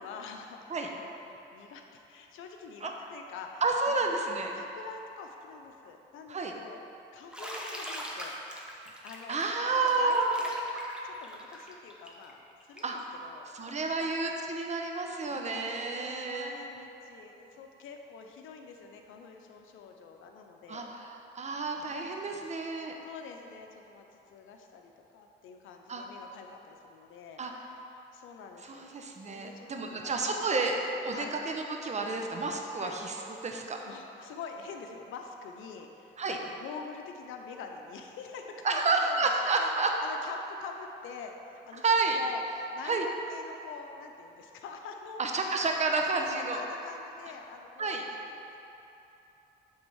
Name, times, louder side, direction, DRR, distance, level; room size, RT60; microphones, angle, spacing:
voice 1, 0.0-4.0 4.5-6.8 7.1-8.3 9.0-14.1 15.2-20.9 21.9-22.5 23.0-30.5 31.1-31.4 32.8-33.0 33.8-42.4 42.7-45.6 46.2-48.6, left 5 dB, 90° left, 3 dB, 0.7 m, -46 dB
voice 2, 3.6-4.5 6.3-6.5 9.3-10.4 12.8-13.0 13.5-16.6 20.7-22.9 25.9-26.0 27.4-27.5 28.6-33.1 33.4-33.8 36.2-36.4 38.6-39.9 41.8-42.2 42.8-43.1 45.2-46.6 47.8-48.0, right 3 dB, 35° right, 2 dB, 0.9 m, -30 dB
Bathtub (filling or washing), 7.3-13.0, equal, 5° right, 1.0 m, -42 dB
8.5 x 3.6 x 6.2 m, 3.0 s
cardioid pair, 90°, 20 cm